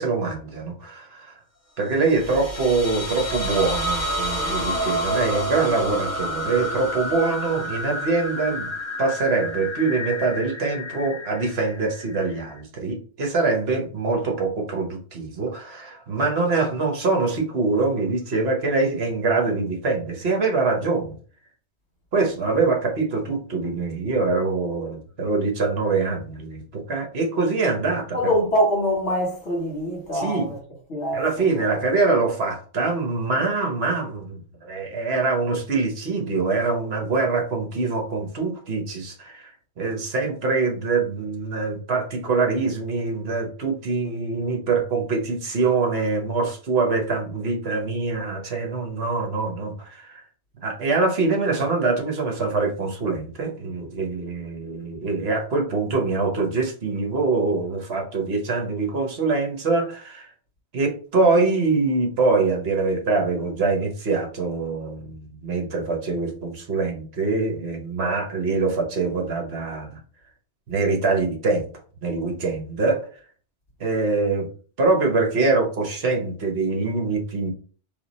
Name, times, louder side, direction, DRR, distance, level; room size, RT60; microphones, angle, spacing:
voice 1, 0.0-1.4 1.8-8.7 9.0-21.1 22.1-28.3 30.1-30.5 31.1-50.2 50.6-60.3 60.7-70.0 70.7-71.7 72.0-73.0 73.8-74.5 74.8-77.5, right 3 dB, 60° right, 1.2 m, -24 dB
sound 1, 2.0-12.6, equal, 15° left, 1.1 m, -29 dB
voice 2, 28.1-30.6 30.9-31.8, equal, 70° left, 1.6 m, -24 dB
3.5 x 3.0 x 4.1 m
omnidirectional pair, 1.2 m